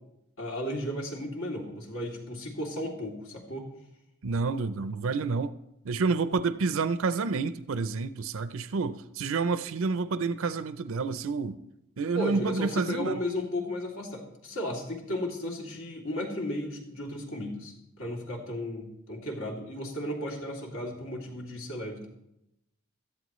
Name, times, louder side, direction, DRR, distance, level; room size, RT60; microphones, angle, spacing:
voice 1, 0.4-3.7 12.1-22.1, left 1 dB, 70° left, -1 dB, 2.7 m, -34 dB
voice 2, 4.2-5.5 5.8-11.6 12.0-13.2, right 4 dB, 60° right, 12 dB, 0.5 m, -29 dB
17.0 x 13.5 x 3.1 m, 0.83 s
head